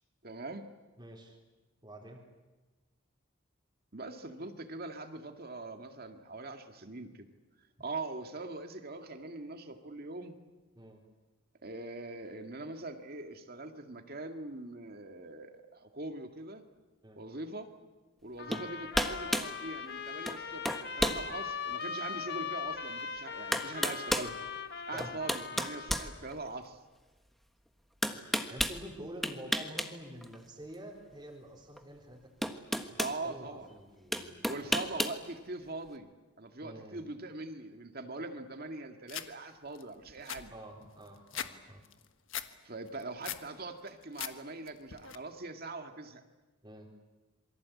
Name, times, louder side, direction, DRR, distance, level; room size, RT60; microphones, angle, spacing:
voice 1, 0.2-0.6 3.9-7.3 7.8-10.4 11.6-16.6 17.2-17.7 18.2-24.4 24.9-26.8 33.0-33.7 34.5-36.1 36.4-40.5 42.6-46.2, right 2 dB, 50° right, 5 dB, 2.1 m, -42 dB
voice 2, 1.0-1.4 1.8-2.2 10.7-11.0 17.0-17.2 18.5-18.6 24.9-25.1 28.5-32.3 32.9-34.9 36.6-37.0 40.5-41.8 46.6-46.9, right 1 dB, 20° right, -3 dB, 4.0 m, -48 dB
sound 1, 18.4-26.2, left 6 dB, 55° left, 1.7 m, -40 dB
sound 2, 18.5-18.7 18.9-19.5 20.3-20.4 20.6-21.2 21.8-21.9 23.0-23.1 23.5-24.3 25.0-26.7 28.0-28.8 29.2-29.9 30.2-30.4 31.8-31.9 32.4-33.2 34.1-35.2, equal, ahead, 1.4 m, -32 dB
sound 3, 39.1-39.3 39.8-39.9 40.1-41.5 41.8-42.5 42.9-43.5 43.9-44.3 44.7-45.2, left 10 dB, 70° left, 1.4 m, -40 dB
27.0 x 23.5 x 8.6 m, 1.2 s
head